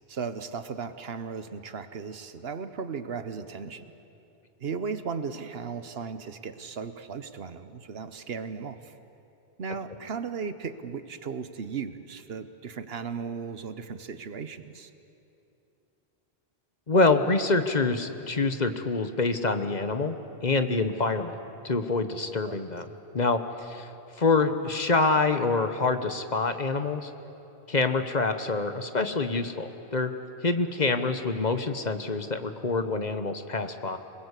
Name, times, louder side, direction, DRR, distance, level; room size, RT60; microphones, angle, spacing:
voice 1, 0.1-3.9 4.6-8.9 9.6-14.9 22.4-22.6, right 5 dB, 70° right, 11 dB, 1.2 m, -36 dB
voice 2, 16.9-20.2 20.4-21.4 21.6-23.9 24.2-27.1 27.7-30.1 30.4-34.0, left 3 dB, 45° left, 8 dB, 1.2 m, -26 dB
27.0 x 20.5 x 8.3 m, 2.8 s
omnidirectional pair, 1.1 m